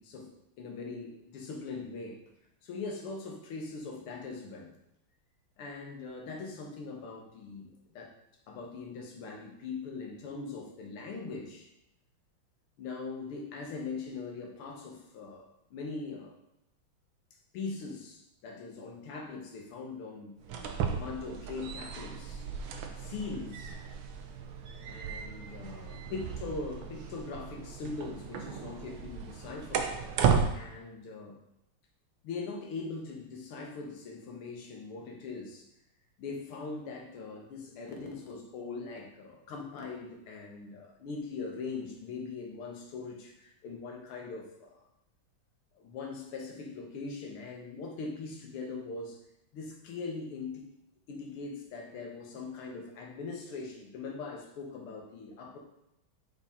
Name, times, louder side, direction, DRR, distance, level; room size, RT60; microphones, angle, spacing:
voice 1, 0.0-2.2 2.6-4.7 5.6-8.1 8.5-11.7 12.8-16.3 17.5-20.4 20.9-22.5 23.0-23.8 24.9-29.9 30.5-31.4 32.2-35.7 36.2-44.8 45.7-49.2 49.5-50.7 51.1-55.6, left 4 dB, 85° left, 1 dB, 2.0 m, -41 dB
sound 1, 20.4-30.5, right 6 dB, 70° right, 1.4 m, -34 dB
7.8 x 4.2 x 3.6 m, 0.85 s
omnidirectional pair, 2.3 m